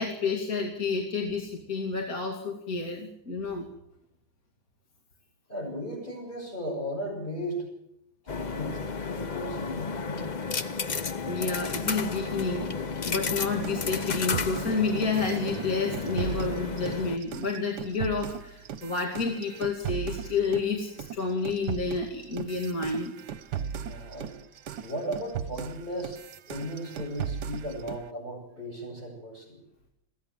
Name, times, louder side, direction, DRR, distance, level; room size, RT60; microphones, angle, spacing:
voice 1, 0.0-3.7 11.3-23.1, left 4 dB, 45° left, 1 dB, 2.9 m, -30 dB
voice 2, 5.5-7.7 8.2-10.3 23.8-24.3 24.8-26.2 26.5-29.6, equal, 25° left, -5 dB, 7.8 m, -36 dB
sound 1, 8.3-17.2, left 5 dB, 70° left, 0.4 m, -32 dB
sound 2, 13.6-20.7 21.0-28.1, right 8 dB, 65° right, 1.5 m, -37 dB
22.0 x 16.5 x 7.5 m, 0.82 s
omnidirectional pair, 2.1 m